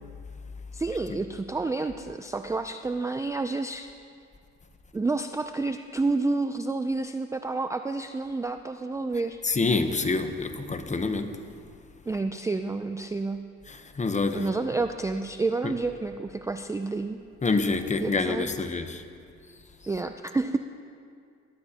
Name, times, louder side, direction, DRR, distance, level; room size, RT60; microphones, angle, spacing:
voice 1, 0.7-3.9 4.9-9.4 12.1-13.4 14.3-17.2 18.0-18.7 19.9-20.6, right 3 dB, 10° right, 8 dB, 0.3 m, -29 dB
voice 2, 9.4-11.3 13.7-14.4 15.6-15.7 17.4-19.0, left 3 dB, 25° left, 8 dB, 0.9 m, -27 dB
20.0 x 12.0 x 2.9 m, 2.3 s
cardioid pair, 90°, 30 cm